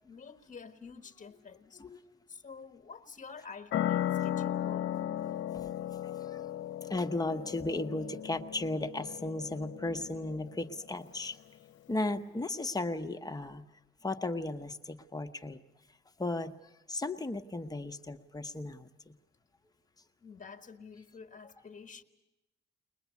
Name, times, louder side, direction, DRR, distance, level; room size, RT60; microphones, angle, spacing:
voice 1, 0.0-1.8 2.3-4.9 20.2-22.0, left 5 dB, 40° left, 6 dB, 1.4 m, -49 dB
voice 2, 1.8-2.1 5.5-6.4 6.9-11.4 11.9-13.6 14.0-15.6 16.2-16.5 16.9-19.1, left 2 dB, 20° left, 6 dB, 1.0 m, -35 dB
sound 1, 3.7-10.9, left 11 dB, 70° left, 0.8 m, -36 dB
22.0 x 20.5 x 8.3 m, 1.0 s
cardioid pair, 90°, 20 cm